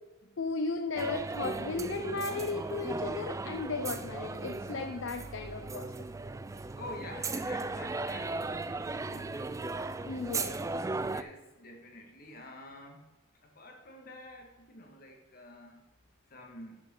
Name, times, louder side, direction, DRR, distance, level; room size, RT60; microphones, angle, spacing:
voice 1, 0.4-5.9 10.0-10.7, left 3 dB, 65° left, 7 dB, 0.5 m, -35 dB
sound 1, 1.0-11.2, right 3 dB, 15° right, 0.3 m, -36 dB
voice 2, 6.7-9.6 11.1-13.0 13.4-15.9 16.3-16.8, left 1 dB, 50° left, 2 dB, 1.8 m, -48 dB
10.5 x 6.6 x 3.8 m, 1.1 s
head